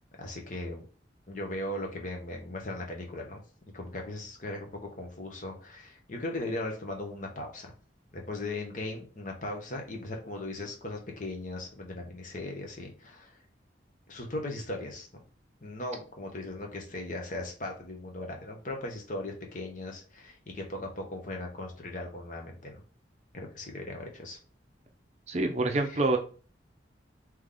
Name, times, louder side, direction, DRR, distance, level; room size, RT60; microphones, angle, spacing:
voice 1, 0.2-0.8 1.3-3.4 3.7-7.7 8.1-13.4 14.1-15.2 15.6-22.8 23.3-24.4 25.8-26.0, left 2 dB, 45° left, 1 dB, 1.0 m, -38 dB
voice 2, 25.3-26.2, right 2 dB, 35° right, 5 dB, 0.6 m, -26 dB
3.4 x 3.1 x 3.8 m, 0.37 s
head